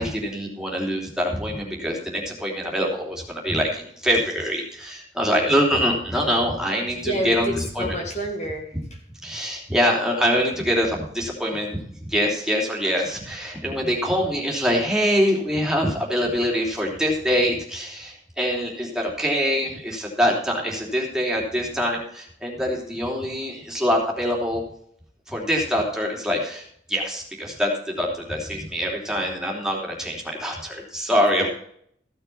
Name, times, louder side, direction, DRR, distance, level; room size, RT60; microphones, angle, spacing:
voice 1, 0.0-8.0 9.2-24.6 25.3-31.5, equal, 5° right, -2 dB, 3.1 m, -24 dB
voice 2, 7.0-7.4 7.8-9.0 31.4-31.5, equal, 40° left, 1 dB, 2.1 m, -29 dB
15.0 x 6.7 x 5.6 m, 0.65 s
head